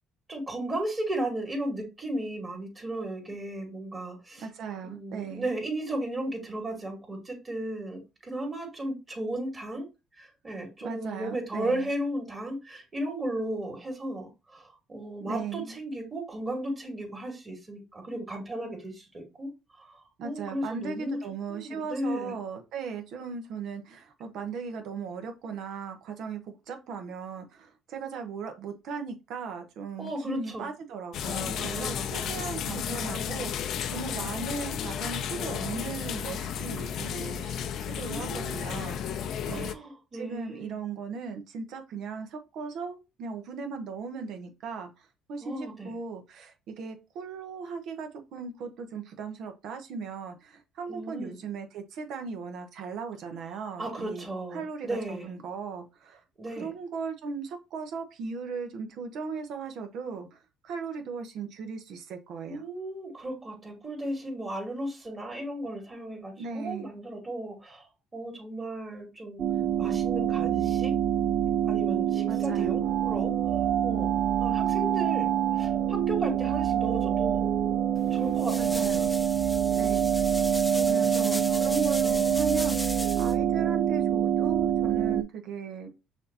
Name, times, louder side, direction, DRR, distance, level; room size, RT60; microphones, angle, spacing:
voice 1, 0.3-4.5 4.8-9.9 10.1-19.5 19.8-21.2 21.5-22.3 30.0-30.7 31.4-32.4 32.7-33.4 38.1-38.7 39.5-40.8 45.4-45.9 50.9-51.4 53.8-55.3 56.4-56.7 62.5-69.4 69.8-70.9 71.7-73.3 73.8-74.1 74.4-77.5 78.1-79.1 79.6-80.1 80.7-82.2, right 1 dB, 30° right, 2.2 m, -35 dB
voice 2, 4.4-5.5 10.8-11.9 15.2-15.7 18.6-18.7 20.2-39.2 39.5-39.7 40.1-54.2 54.5-56.2 56.6-62.6 66.4-66.9 72.3-72.9 78.6-79.1 79.8-80.0 80.9-85.9, right 5 dB, 70° right, 0.9 m, -38 dB
sound 1, 31.1-39.7, left 8 dB, 65° left, 0.5 m, -33 dB
sound 2, 69.4-85.2, right 9 dB, 50° right, 0.4 m, -26 dB
sound 3, 77.9-83.3, left 1 dB, 10° left, 0.6 m, -37 dB
6.3 x 2.7 x 2.8 m
supercardioid pair, 80°, 0 cm